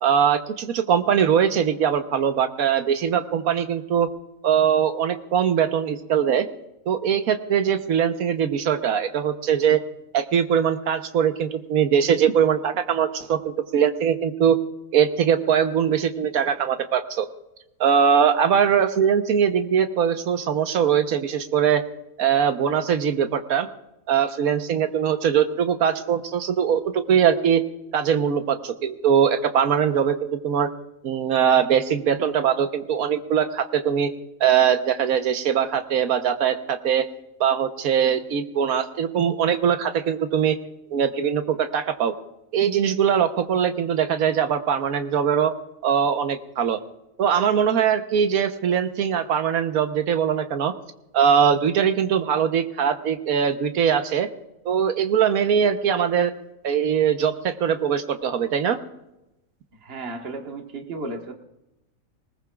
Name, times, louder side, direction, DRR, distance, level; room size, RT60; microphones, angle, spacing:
voice 1, 0.0-4.1 4.4-6.5 6.9-9.8 10.1-14.6 14.9-17.3 17.8-21.8 22.2-23.7 24.1-27.6 27.9-30.7 31.0-34.1 34.4-37.1 37.4-40.6 40.9-42.1 42.5-45.5 45.8-46.8 47.2-50.7 51.1-54.3 54.6-56.3 56.6-58.8, right 8 dB, 90° right, 8 dB, 1.4 m, -21 dB
voice 2, 59.8-61.3, right 2 dB, 45° right, 3 dB, 1.6 m, -34 dB
20.0 x 19.5 x 2.4 m, 0.92 s
omnidirectional pair, 1.5 m